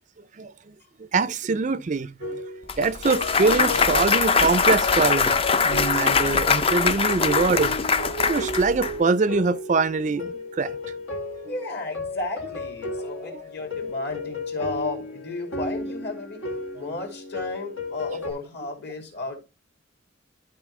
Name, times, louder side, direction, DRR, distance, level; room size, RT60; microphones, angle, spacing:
voice 1, 0.4-0.7 1.1-2.4 2.8-5.4 5.6-7.8 8.3-10.7 13.3-13.4, right 4 dB, 35° right, 0.4 m, -24 dB
sound 1, 2.2-18.3, left 1 dB, 80° left, 1.9 m, -34 dB
Clapping / Cheering / Applause, 2.7-8.9, left 5 dB, 30° left, 0.4 m, -22 dB
voice 2, 11.2-16.5 16.7-19.4, left 2 dB, 55° left, 2.7 m, -33 dB
12.5 x 4.4 x 3.2 m
head